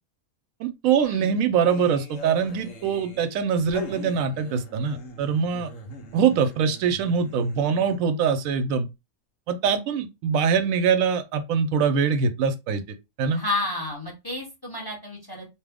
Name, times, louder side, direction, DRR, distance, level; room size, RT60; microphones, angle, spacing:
voice 1, 0.6-5.7 6.1-8.9 9.5-12.8 13.2-13.4, right 6 dB, 85° right, 1.0 m, -23 dB
sound 1, 1.7-8.2, left 1 dB, 75° left, 1.2 m, -41 dB
voice 2, 13.3-15.5, left 2 dB, 20° left, 1.0 m, -31 dB
2.9 x 2.1 x 3.4 m
omnidirectional pair, 1.4 m